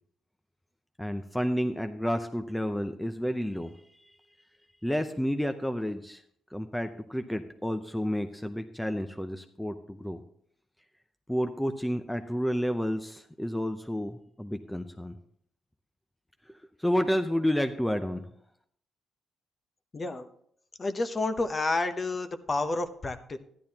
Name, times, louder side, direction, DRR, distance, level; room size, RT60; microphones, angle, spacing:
voice 1, 1.0-4.0 4.8-6.2 6.5-10.2 11.3-15.1 16.8-18.2, equal, 5° left, 7 dB, 0.5 m, -30 dB
voice 2, 19.9-20.2 20.8-23.4, left 2 dB, 30° left, 9 dB, 0.8 m, -30 dB
12.5 x 10.5 x 2.9 m, 0.66 s
cardioid pair, 90°, 0 cm